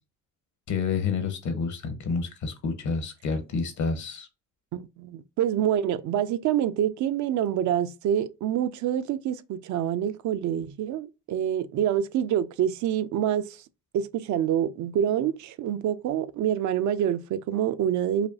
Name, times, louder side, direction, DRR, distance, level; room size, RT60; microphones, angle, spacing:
voice 1, 0.7-4.3, left 5 dB, 70° left, 1.1 m, -29 dB
voice 2, 4.7-13.6 13.9-18.3, right 10 dB, 75° right, 0.5 m, -26 dB
5.0 x 2.3 x 2.7 m
cardioid pair, 90°, 30 cm